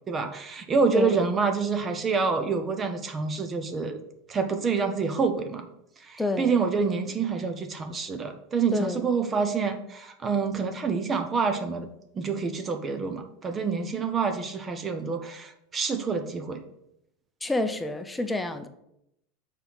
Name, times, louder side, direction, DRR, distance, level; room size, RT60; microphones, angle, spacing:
voice 1, 0.1-4.0 4.3-5.7 6.0-11.9 12.1-16.6, right 5 dB, 30° right, 7 dB, 0.8 m, -27 dB
voice 2, 6.2-6.5 8.7-9.0 17.4-18.7, left 2 dB, 10° left, 9 dB, 0.7 m, -28 dB
6.7 x 4.5 x 4.1 m, 0.80 s
hypercardioid pair, 90°, 0 cm